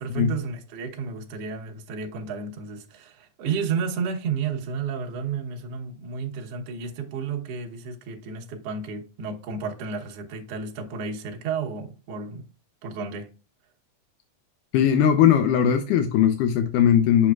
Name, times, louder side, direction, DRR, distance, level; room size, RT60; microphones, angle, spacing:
voice 1, 0.0-12.5 12.8-13.3, right 5 dB, 80° right, 1.4 m, -32 dB
voice 2, 14.7-17.3, left 9 dB, 80° left, 1.9 m, -19 dB
8.3 x 6.3 x 2.3 m
omnidirectional pair, 4.4 m